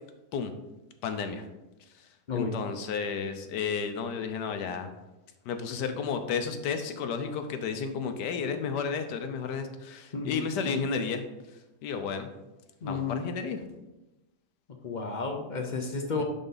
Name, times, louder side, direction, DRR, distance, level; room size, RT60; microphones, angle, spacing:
voice 1, 1.0-1.4 1.9-4.9 5.4-11.2 11.8-12.3 12.8-13.6, left 6 dB, 80° left, 7 dB, 1.3 m, -32 dB
voice 2, 10.1-10.8 12.8-13.2 14.8-16.2, left 4 dB, 50° left, 3 dB, 0.5 m, -32 dB
10.5 x 4.1 x 3.9 m, 1.0 s
omnidirectional pair, 1.8 m